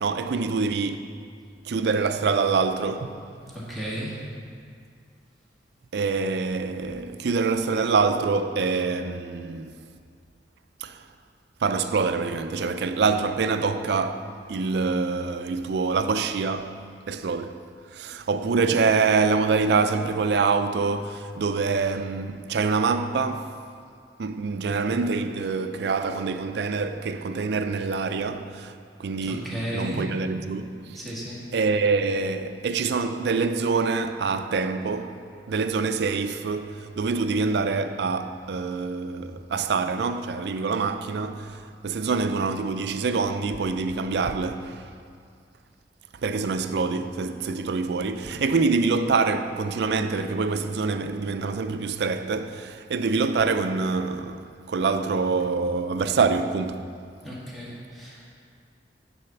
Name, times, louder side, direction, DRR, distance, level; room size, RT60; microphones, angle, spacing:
voice 1, 0.0-1.2 1.7-3.1 5.9-9.7 10.8-11.0 11.6-17.6 17.9-23.5 24.2-28.7 29.0-31.0 31.5-35.2 35.5-44.9 46.2-57.0, right 4 dB, 65° right, 0.4 m, -25 dB
voice 2, 3.7-4.2 29.2-30.1 31.0-31.4 57.2-58.2, equal, ahead, 1.7 m, -33 dB
9.9 x 4.2 x 5.8 m
head